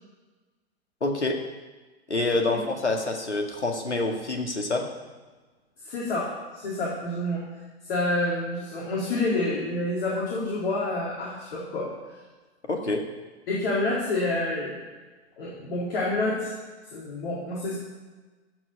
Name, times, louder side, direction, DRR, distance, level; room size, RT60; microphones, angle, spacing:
voice 1, 1.0-1.4 2.1-4.9 12.6-13.0, left 2 dB, 80° left, 2 dB, 2.0 m, -27 dB
voice 2, 5.8-7.4 7.8-11.9 13.5-14.8 15.4-16.5 16.9-17.8, left 2 dB, 55° left, -5 dB, 3.9 m, -28 dB
15.5 x 6.2 x 8.5 m, 1.3 s
figure-of-eight pair, 105°, 34 cm